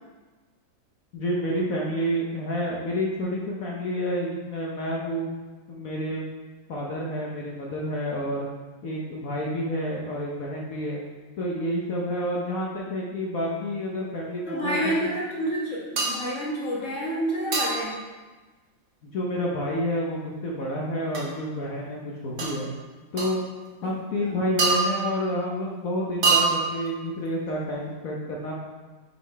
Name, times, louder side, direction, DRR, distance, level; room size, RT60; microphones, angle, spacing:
voice 1, 1.1-5.3 5.7-6.2 6.7-8.5 8.8-11.0 11.4-15.1 19.0-22.7 23.1-23.4 23.8-28.5, equal, 60° left, -3 dB, 0.9 m, -29 dB
voice 2, 14.5-18.0 23.8-23.9 24.2-24.4, right 1 dB, 40° left, -6 dB, 1.5 m, -29 dB
sound 1, 16.0-16.3 17.5-17.9 21.1-21.2 22.4-22.5 23.2-23.3 24.6-25.3 26.2-26.9, right 4 dB, 45° right, 1.2 m, -24 dB
6.2 x 3.8 x 4.5 m, 1.3 s
omnidirectional pair, 2.2 m